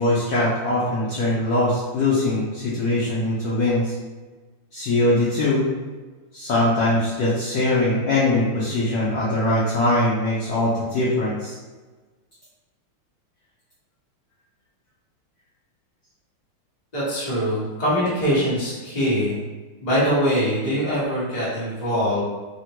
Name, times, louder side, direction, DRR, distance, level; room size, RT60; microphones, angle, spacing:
voice 1, 0.0-3.9 4.7-5.7 6.3-11.5, left 2 dB, 90° left, -7 dB, 0.8 m, -22 dB
voice 2, 16.9-19.4 19.8-22.2, equal, 30° left, -10 dB, 0.8 m, -23 dB
3.3 x 2.1 x 2.8 m, 1.3 s
omnidirectional pair, 2.3 m